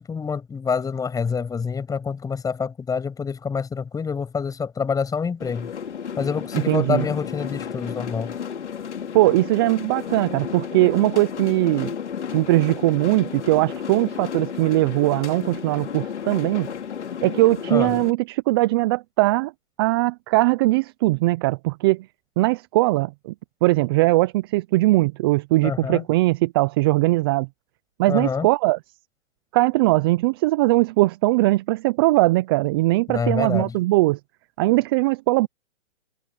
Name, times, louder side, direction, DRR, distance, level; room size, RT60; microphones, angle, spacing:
voice 1, 0.0-5.7 6.2-8.3 17.7-17.9 25.6-26.0 28.1-28.5 33.1-33.7, left 5 dB, 10° left, 7.8 m, -27 dB
sound 1, 5.4-18.1, left 7 dB, 70° left, 2.9 m, -33 dB
voice 2, 6.5-7.1 9.1-11.9 12.3-16.7 17.2-19.5 19.8-22.1 22.4-23.3 23.6-27.5 28.0-28.8 29.5-34.2 34.6-35.5, right 20 dB, 20° right, 0.5 m, -20 dB
hypercardioid pair, 140°, 35 cm